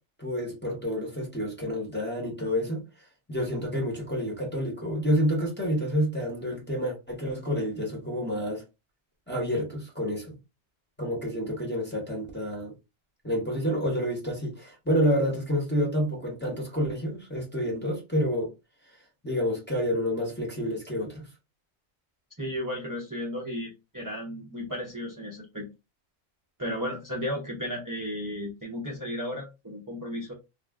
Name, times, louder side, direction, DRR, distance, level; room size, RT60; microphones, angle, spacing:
voice 1, 0.2-2.8 3.3-8.6 9.3-10.4 11.0-12.7 13.2-18.5 19.2-21.3, equal, 10° left, 0.7 m, -29 dB
voice 2, 22.4-25.7 26.6-30.3, equal, 30° right, 0.4 m, -34 dB
2.4 x 2.0 x 3.4 m
omnidirectional pair, 1.4 m